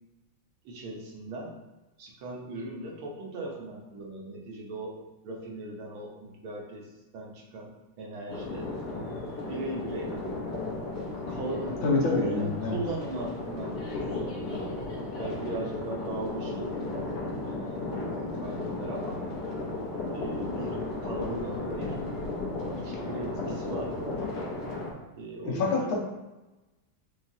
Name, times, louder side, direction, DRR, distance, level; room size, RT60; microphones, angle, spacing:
voice 1, 0.7-1.6 2.0-5.0 5.2-8.7 9.4-10.2 11.3-13.8 14.2-14.8 15.2-18.0 18.4-19.2 20.1-22.0 22.7-24.3 25.2-26.0, right 2 dB, 85° right, -1 dB, 1.7 m, -38 dB
sound 1, 8.3-24.9, left 2 dB, 60° left, 1.3 m, -35 dB
voice 2, 11.8-12.8 25.4-26.0, left 3 dB, 80° left, -2 dB, 1.7 m, -26 dB
4.9 x 3.0 x 2.7 m, 1.1 s
omnidirectional pair, 2.2 m